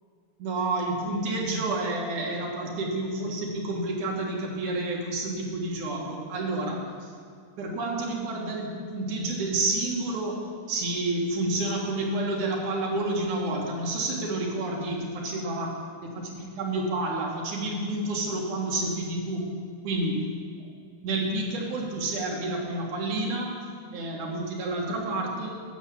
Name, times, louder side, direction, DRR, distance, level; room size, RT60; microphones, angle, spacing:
voice 1, 0.4-7.1 7.6-19.5 19.8-20.2 21.0-23.5 23.9-25.5, right 2 dB, 70° right, -2 dB, 3.1 m, -29 dB
11.0 x 7.3 x 7.1 m, 2.3 s
omnidirectional pair, 3.7 m